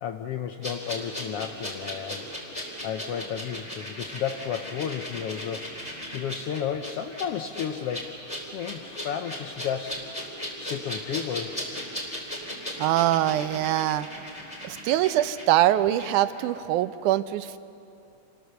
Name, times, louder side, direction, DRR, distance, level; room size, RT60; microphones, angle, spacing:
voice 1, 0.0-2.3 2.8-5.7 6.1-8.1 8.5-10.0 10.6-11.6, left 8 dB, 75° left, 6 dB, 1.4 m, -32 dB
sound 1, 0.6-16.1 16.4-16.5, equal, 10° left, 3.4 m, -37 dB
voice 2, 12.8-14.1 14.6-17.6, right 13 dB, 85° right, 13 dB, 2.2 m, -23 dB
28.0 x 21.0 x 6.8 m, 2.7 s
omnidirectional pair, 3.5 m